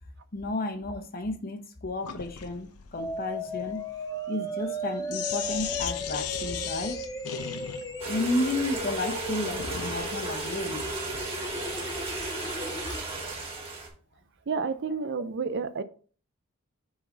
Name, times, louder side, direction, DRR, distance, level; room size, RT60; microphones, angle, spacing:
voice 1, 0.3-3.8 4.3-7.0 8.1-10.9 12.4-12.6, left 2 dB, 40° left, 0.9 m, -32 dB
Sink (filling or washing), 2.0-10.1, left 8 dB, 85° left, 0.7 m, -38 dB
sound 1, 3.0-13.0, equal, 15° left, 0.8 m, -36 dB
sound 2, 8.0-13.9, right 3 dB, 25° right, 2.4 m, -35 dB
voice 2, 14.5-15.8, right 5 dB, 50° right, 0.5 m, -30 dB
7.2 x 3.9 x 3.9 m
head